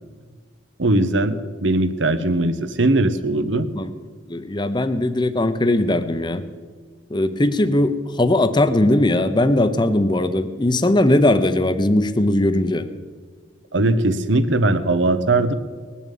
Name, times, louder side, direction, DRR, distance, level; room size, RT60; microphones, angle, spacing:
voice 1, 0.8-3.7 13.7-15.5, right 2 dB, 70° right, 11 dB, 1.0 m, -19 dB
voice 2, 4.3-6.4 7.1-12.9, left 1 dB, 25° left, 11 dB, 0.7 m, -19 dB
19.5 x 7.2 x 8.4 m, 1.6 s
head